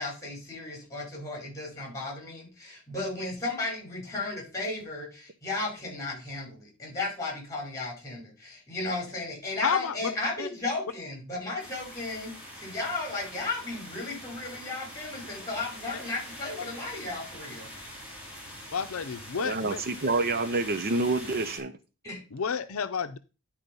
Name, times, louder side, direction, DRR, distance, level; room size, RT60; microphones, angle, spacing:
voice 1, 0.0-17.7 22.0-22.2, left 2 dB, 15° left, 4.9 m, -35 dB
voice 2, 9.6-10.1 10.4-10.5 18.7-19.8 22.3-23.2, left 6 dB, 80° left, 0.6 m, -30 dB
sound 1, 11.6-21.6, equal, 5° right, 3.8 m, -44 dB
voice 3, 19.4-21.7, right 3 dB, 45° right, 0.7 m, -28 dB
10.5 x 4.5 x 5.3 m
head